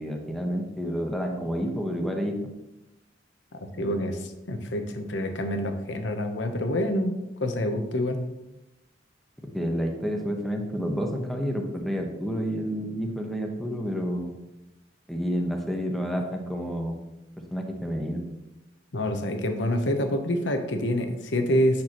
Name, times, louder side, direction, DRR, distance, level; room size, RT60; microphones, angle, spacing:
voice 1, 0.0-2.3 9.5-14.4 15.1-17.0 17.5-18.2, equal, ahead, 2 dB, 0.9 m, -29 dB
voice 2, 3.8-8.2 18.9-21.8, equal, 75° left, 6 dB, 0.9 m, -27 dB
8.7 x 6.1 x 3.0 m, 0.95 s
head